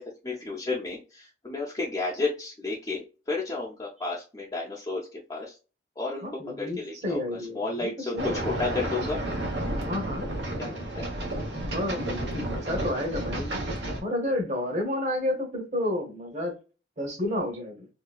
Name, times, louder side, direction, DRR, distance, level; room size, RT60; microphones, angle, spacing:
voice 1, 0.0-5.6 6.0-6.3 6.6-7.2 7.5-9.2 10.6-11.1 13.6-13.9, left 3 dB, 20° left, -4 dB, 0.6 m, -32 dB
voice 2, 6.2-8.5 9.9-10.2 11.6-13.5 14.0-16.5 17.0-17.9, left 1 dB, 40° right, 3 dB, 1.1 m, -31 dB
sound 1, 8.2-14.0, right 1 dB, 75° right, 1.1 m, -31 dB
3.2 x 2.9 x 2.3 m, 0.33 s
head